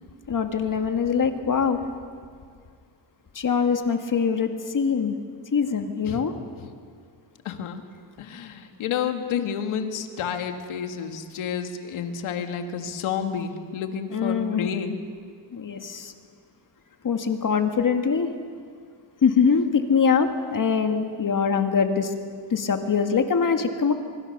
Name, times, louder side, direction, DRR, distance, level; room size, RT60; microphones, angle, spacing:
voice 1, 0.3-1.8 3.3-5.2 5.5-6.3 14.1-14.7 15.5-16.1 17.0-18.3 19.2-22.1 22.5-23.9, left 6 dB, 40° left, 6 dB, 2.1 m, -23 dB
voice 2, 7.4-7.8 8.2-15.0, left 7 dB, 75° left, 6 dB, 2.3 m, -30 dB
24.5 x 24.0 x 6.8 m, 2.1 s
cardioid pair, 95°, 49 cm